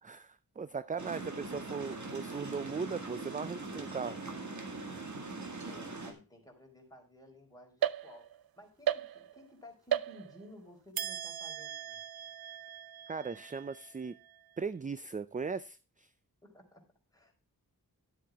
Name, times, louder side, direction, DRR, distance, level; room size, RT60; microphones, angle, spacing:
voice 1, 0.0-4.2 13.1-14.2 14.6-16.1, right 5 dB, 25° right, 15 dB, 0.4 m, -38 dB
sound 1, 1.0-6.1, right 3 dB, 55° right, 2.1 m, -42 dB
voice 2, 5.7-8.2 8.5-12.0 16.4-16.8 17.1-17.3, left 1 dB, 10° left, 0 dB, 4.1 m, -55 dB
sound 2, 7.8-8.5 8.9-9.5 9.9-10.6 11.0-14.4, right 10 dB, 80° right, 0.5 m, -37 dB
12.0 x 7.6 x 3.5 m, 0.32 s
wide cardioid pair, 100°, 35 cm